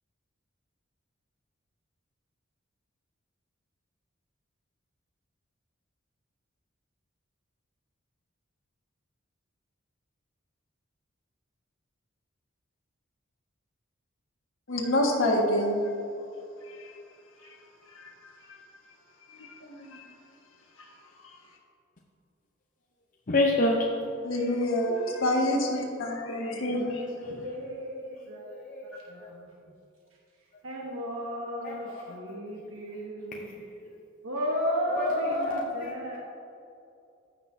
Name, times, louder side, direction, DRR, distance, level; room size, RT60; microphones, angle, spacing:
voice 1, 14.7-15.8 16.7-16.9 17.4-17.6 17.9-18.1 18.5-18.6 19.3-20.0 20.8-20.9 21.2-21.4 24.2-27.3, left 1 dB, 75° left, -1 dB, 1.6 m, -28 dB
voice 2, 23.3-23.9 26.7-26.9 27.2-27.5 28.4-29.3 31.6-32.1 32.9-33.0 33.3-33.9 34.9-36.2, left 2 dB, 40° left, -1 dB, 0.7 m, -29 dB
voice 3, 26.4-28.5 28.8-29.8 30.6-33.6 34.2-36.2, equal, 80° right, -3 dB, 1.1 m, -35 dB
15.0 x 6.0 x 2.7 m, 2.6 s
head